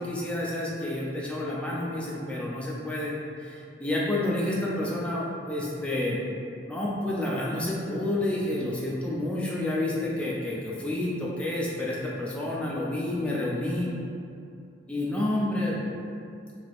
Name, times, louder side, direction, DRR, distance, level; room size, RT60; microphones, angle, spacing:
voice 1, 0.0-3.1 3.4-6.2 6.7-13.9 14.9-15.8, left 1 dB, 5° left, -6 dB, 0.4 m, -29 dB
3.3 x 2.7 x 2.4 m, 2.5 s
head